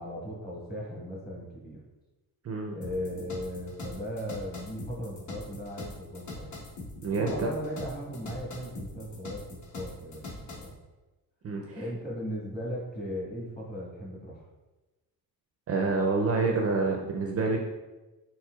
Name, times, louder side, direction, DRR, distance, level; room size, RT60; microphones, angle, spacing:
voice 1, 0.0-1.8 2.7-6.7 7.1-10.7 11.6-14.5, equal, 25° left, -5 dB, 1.4 m, -37 dB
sound 1, 2.8-10.7, left 2 dB, 50° left, 1.1 m, -42 dB
voice 2, 7.0-7.5 11.4-11.8 15.7-17.6, right 3 dB, 40° right, 1 dB, 0.4 m, -27 dB
4.3 x 4.3 x 2.3 m, 1.1 s
cardioid pair, 135°, 38 cm